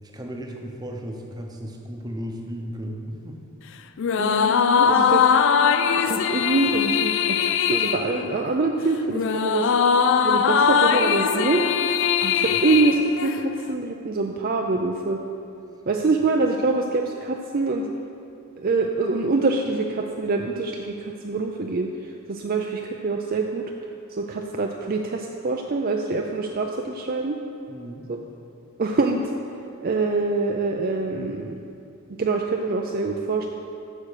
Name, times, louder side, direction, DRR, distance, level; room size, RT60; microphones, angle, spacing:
voice 1, 0.0-3.4 12.5-12.6 27.7-28.1, equal, 20° right, 1 dB, 0.8 m, -35 dB
sound 1, 4.0-13.7, left 7 dB, 55° left, 0.3 m, -21 dB
voice 2, 4.2-5.2 6.0-9.7 10.2-11.6 12.2-15.2 15.9-17.9 18.6-23.7 24.1-27.4 28.1-28.2 28.8-29.3 29.8-31.6 32.2-33.5, right 3 dB, 40° right, 2 dB, 0.4 m, -25 dB
8.4 x 6.4 x 6.5 m, 2.6 s
head